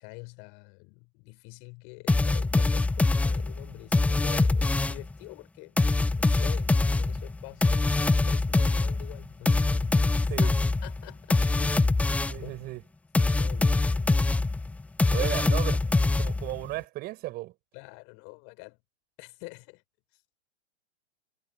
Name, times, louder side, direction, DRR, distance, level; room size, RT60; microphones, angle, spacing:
voice 1, 0.0-5.8 6.1-12.0 12.4-12.5 13.3-14.2 15.2-15.3 17.7-18.8 19.2-19.8, left 32 dB, 30° left, 6.8 m, -46 dB
sound 1, 2.1-5.1 5.8-12.5 13.1-16.7, left 3 dB, 5° left, 1.2 m, -24 dB
voice 2, 12.3-12.8 15.1-15.8 16.2-17.5, right 18 dB, 25° right, 8.0 m, -34 dB
figure-of-eight pair, 115°, 35 cm